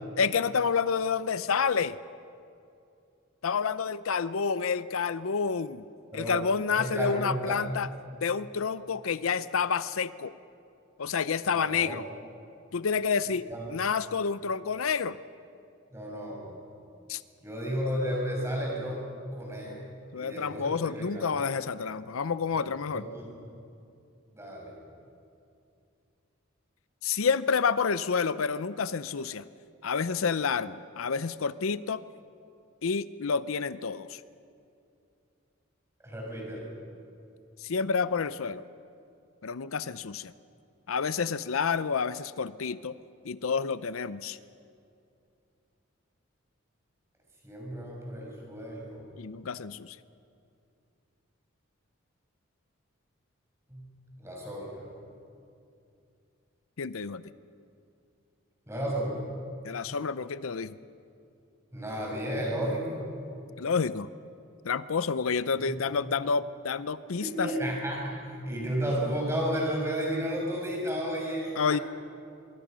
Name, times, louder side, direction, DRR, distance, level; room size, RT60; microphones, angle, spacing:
voice 1, 0.2-2.0 3.4-5.8 6.1-7.9 8.2-10.3 11.0-12.0 12.7-15.2 17.1-17.2 19.6-19.8 20.1-23.1 27.0-29.5 29.8-32.0 32.8-34.2 37.6-38.6 39.4-40.3 40.9-43.0 43.2-44.4 49.2-50.0 56.8-57.2 59.6-60.8 63.6-64.1 64.6-67.5 71.6-71.8, left 5 dB, 85° left, 15 dB, 0.6 m, -29 dB
voice 2, 6.7-7.6 11.5-12.0 13.3-13.6 15.9-16.6 17.4-19.0 19.3-19.8 20.2-21.3 22.5-22.6 22.9-23.3 24.3-24.7 36.0-36.7 47.4-49.0 53.7-53.9 54.2-54.8 58.7-59.2 61.7-63.0 65.6-65.8 67.2-71.8, equal, 15° right, -2 dB, 6.1 m, -33 dB
24.0 x 23.0 x 6.3 m, 2.5 s
head